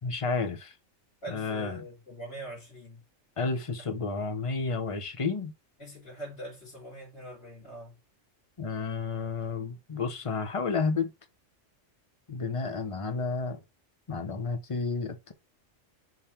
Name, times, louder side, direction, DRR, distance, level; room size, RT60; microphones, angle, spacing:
voice 1, 0.0-0.7 1.3-1.8 3.4-5.5 8.6-11.1 12.3-13.6 14.1-15.3, left 4 dB, 30° left, 0.9 m, -31 dB
voice 2, 1.2-3.0 3.7-3.9 5.8-8.0, right 1 dB, 50° left, 3.9 m, -43 dB
5.9 x 3.6 x 4.4 m
omnidirectional pair, 1.3 m